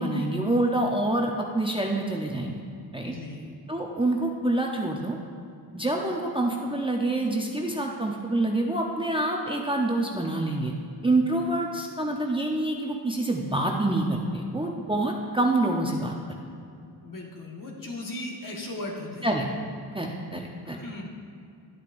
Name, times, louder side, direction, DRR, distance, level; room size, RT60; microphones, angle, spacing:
voice 1, 0.0-2.6 2.9-3.1 3.7-5.2 5.7-10.7 11.0-16.1 19.2-19.5 19.9-20.8, right 2 dB, 10° right, 0 dB, 0.7 m, -26 dB
voice 2, 3.0-3.5 17.0-19.3 20.7-21.0, left 2 dB, 45° left, -1 dB, 1.6 m, -37 dB
11.0 x 8.7 x 2.6 m, 2.4 s
cardioid pair, 75°, 44 cm